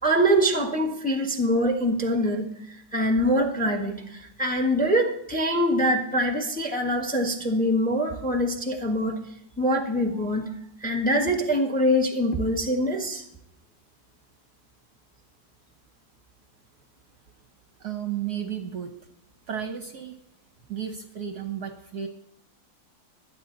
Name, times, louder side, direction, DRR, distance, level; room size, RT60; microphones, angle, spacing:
voice 1, 0.0-9.2 9.6-10.5 10.8-13.2, equal, 5° left, 4 dB, 1.2 m, -24 dB
voice 2, 17.8-18.9 19.5-20.2 20.7-22.1, right 9 dB, 55° right, 7 dB, 1.3 m, -33 dB
21.5 x 9.3 x 4.0 m, 0.77 s
omnidirectional pair, 2.3 m